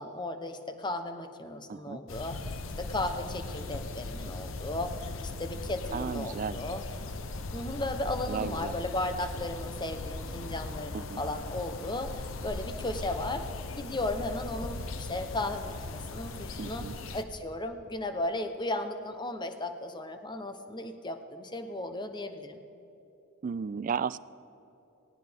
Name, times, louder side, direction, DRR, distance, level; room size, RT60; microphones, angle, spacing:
voice 1, 0.0-2.4 2.8-4.9 5.2-6.8 7.5-13.5 13.8-16.9 17.1-22.6, left 2 dB, 20° left, 7 dB, 0.9 m, -35 dB
voice 2, 1.7-2.0 5.9-6.6 8.3-8.7 10.9-11.2 16.6-16.9 23.4-24.2, right 6 dB, 40° right, 17 dB, 0.3 m, -34 dB
sound 1, 2.1-17.2, left 2 dB, 65° left, 0.8 m, -39 dB
18.5 x 17.5 x 3.6 m, 2.9 s
head